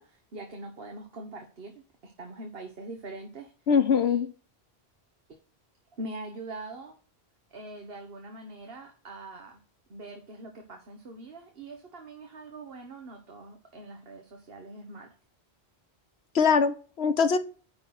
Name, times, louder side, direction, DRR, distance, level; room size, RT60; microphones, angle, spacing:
voice 1, 0.0-1.7 2.0-3.5 4.0-4.2 5.3-5.4 6.0-7.0 7.5-9.6 9.9-15.1, right 2 dB, 65° right, 4 dB, 1.5 m, -43 dB
voice 2, 3.7-4.3 16.3-17.4, left 6 dB, 80° left, 11 dB, 1.2 m, -22 dB
10.5 x 3.9 x 5.8 m, 0.38 s
omnidirectional pair, 1.1 m